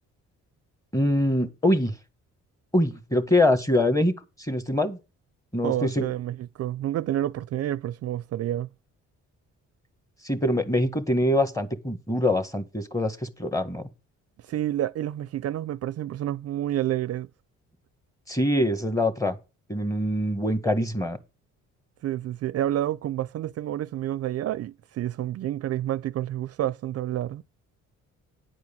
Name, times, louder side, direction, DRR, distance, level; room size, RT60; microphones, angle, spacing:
voice 1, 0.9-1.9 2.7-5.0 5.5-6.1 10.2-13.9 18.3-19.4 19.7-21.2, left 1 dB, 10° left, 1.5 m, -24 dB
voice 2, 5.6-8.7 14.4-17.3 22.0-27.4, right 12 dB, 55° right, 0.4 m, -29 dB
9.9 x 4.6 x 7.1 m
cardioid pair, 90°, 30 cm